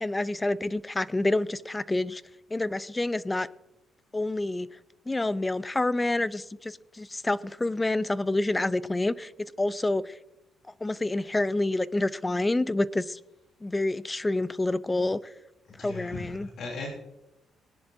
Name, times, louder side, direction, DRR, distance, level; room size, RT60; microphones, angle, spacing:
voice 1, 0.0-2.2 2.5-3.5 4.1-4.7 5.1-9.3 9.6-10.1 10.8-13.2 13.6-15.2 15.8-16.5, left 2 dB, 15° left, 0.6 m, -28 dB
voice 2, 15.7-16.9, left 4 dB, 65° left, 3.2 m, -38 dB
19.5 x 10.5 x 2.8 m
cardioid pair, 90°, 0 cm